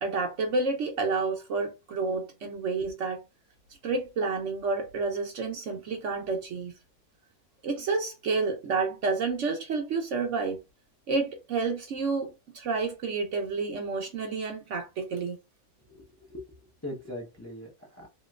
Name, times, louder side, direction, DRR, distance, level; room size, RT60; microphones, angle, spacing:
voice 1, 0.0-3.2 3.8-6.7 7.6-10.6 11.1-15.4, right 4 dB, 60° right, 0.8 m, -30 dB
voice 2, 15.8-18.1, left 1 dB, 25° left, 0.3 m, -41 dB
3.0 x 2.9 x 2.3 m
omnidirectional pair, 1.7 m